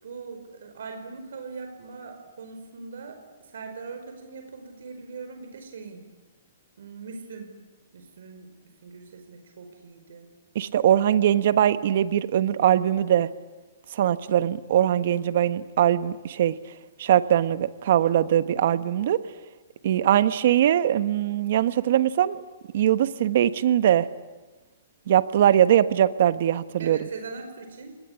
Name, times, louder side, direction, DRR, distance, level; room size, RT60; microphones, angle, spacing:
voice 1, 0.0-3.2 3.4-6.0 6.8-7.5 7.9-8.5 8.8-10.3 26.8-28.0, right 4 dB, 75° right, 6 dB, 5.1 m, -40 dB
voice 2, 10.5-13.3 13.9-16.5 17.0-19.2 19.8-22.4 22.7-24.1 25.1-27.1, right 11 dB, 60° right, 13 dB, 1.4 m, -21 dB
27.5 x 20.5 x 10.0 m, 1.2 s
hypercardioid pair, 140°, 0 cm